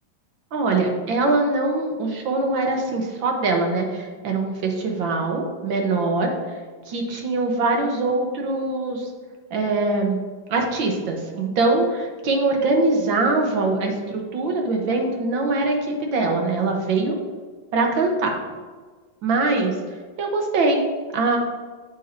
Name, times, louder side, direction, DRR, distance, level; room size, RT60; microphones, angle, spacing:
voice 1, 0.5-6.6 6.9-9.1 9.5-10.2 10.5-17.2 17.7-18.4 19.2-19.7 20.2-20.9 21.1-21.4, right 3 dB, 85° right, 2 dB, 1.9 m, -22 dB
8.5 x 8.3 x 2.7 m, 1.5 s
omnidirectional pair, 2.1 m